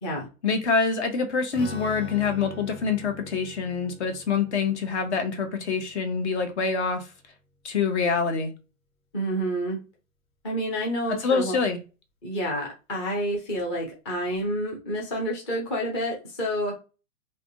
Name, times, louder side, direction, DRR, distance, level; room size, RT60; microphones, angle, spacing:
voice 1, 0.4-7.0 7.6-8.5 11.2-11.8, left 5 dB, 50° left, 0.8 m, -25 dB
Strum, 1.5-7.1, equal, 75° left, 1.6 m, -43 dB
voice 2, 9.1-9.8 10.4-11.6 12.2-16.8, equal, 20° left, 0.5 m, -29 dB
3.3 x 2.5 x 2.6 m
hypercardioid pair, 170°, 43 cm